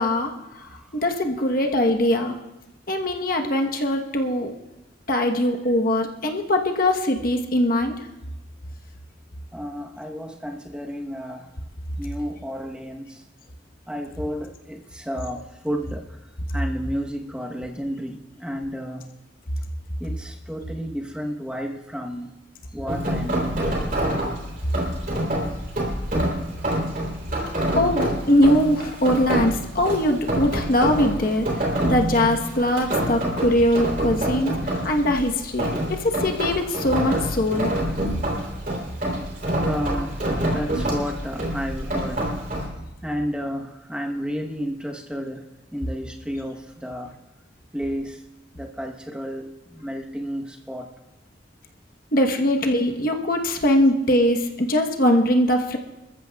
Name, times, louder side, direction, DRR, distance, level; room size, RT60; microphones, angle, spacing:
voice 1, 0.0-2.4 2.9-4.5 5.1-8.0 27.7-37.7 52.1-55.8, left 1 dB, 50° left, 3 dB, 1.1 m, -22 dB
voice 2, 0.7-1.0 9.5-11.5 12.0-13.2 13.9-16.2 16.5-19.1 20.0-22.3 22.7-24.0 39.6-42.3 43.0-47.1 47.7-48.2 48.5-50.9, equal, 5° right, 1 dB, 1.0 m, -32 dB
Rain, 22.9-42.7, right 1 dB, 45° right, 3.3 m, -27 dB
27.0 x 14.0 x 2.3 m, 1.0 s
head